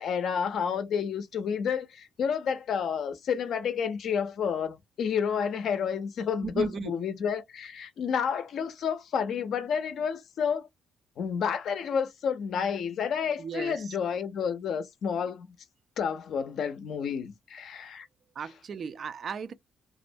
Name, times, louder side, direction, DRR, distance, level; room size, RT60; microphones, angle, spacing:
voice 1, 0.0-10.7 11.2-15.5 16.0-18.1, left 7 dB, 65° left, 0.5 m, -30 dB
voice 2, 6.4-7.0 13.4-14.0 18.4-19.5, right 6 dB, 50° right, 0.3 m, -36 dB
2.4 x 2.1 x 2.5 m
cardioid pair, 120°, 0 cm